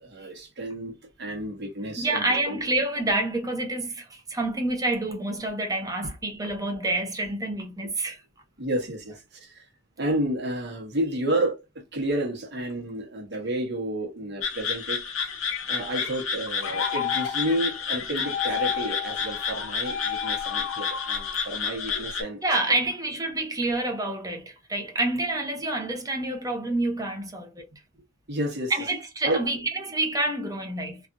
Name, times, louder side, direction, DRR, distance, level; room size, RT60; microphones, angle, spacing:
voice 1, 0.0-2.6 8.6-9.7 10.0-11.6 11.9-15.1 15.7-22.4 28.3-28.7 29.2-29.4, right 1 dB, 60° right, 1.2 m, -30 dB
voice 2, 2.0-8.2 22.4-27.7 28.7-31.0, right 2 dB, 20° right, 0.8 m, -28 dB
sound 1, 14.4-22.2, left 6 dB, 90° left, 1.0 m, -31 dB
sound 2, 14.9-22.5, left 9 dB, 70° left, 0.5 m, -34 dB
3.3 x 2.4 x 2.6 m
head